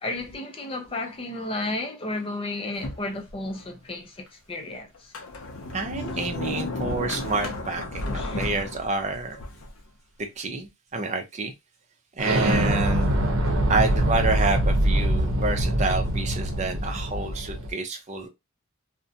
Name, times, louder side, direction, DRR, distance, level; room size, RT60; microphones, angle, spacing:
voice 1, 0.0-5.1 6.1-6.2 8.1-8.4, left 2 dB, 25° left, 0.5 m, -33 dB
Sliding door, 2.8-3.7 4.3-4.4 4.9-9.8, left 2 dB, 70° left, 0.5 m, -33 dB
voice 2, 5.7-9.4 10.2-11.5 12.2-13.2 13.7-18.3, right 3 dB, 35° right, 0.5 m, -28 dB
Explosion, 12.2-17.7, right 1 dB, 70° right, 0.7 m, -24 dB
2.5 x 2.1 x 2.7 m
head